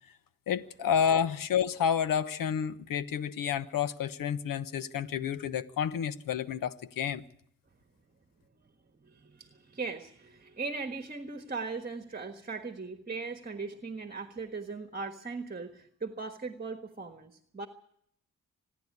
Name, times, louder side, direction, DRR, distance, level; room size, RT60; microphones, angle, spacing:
voice 1, 0.5-7.2, left 8 dB, 85° left, 1.0 m, -30 dB
voice 2, 9.0-17.7, right 4 dB, 25° right, 1.5 m, -39 dB
26.5 x 10.5 x 9.6 m
cardioid pair, 75°, 33 cm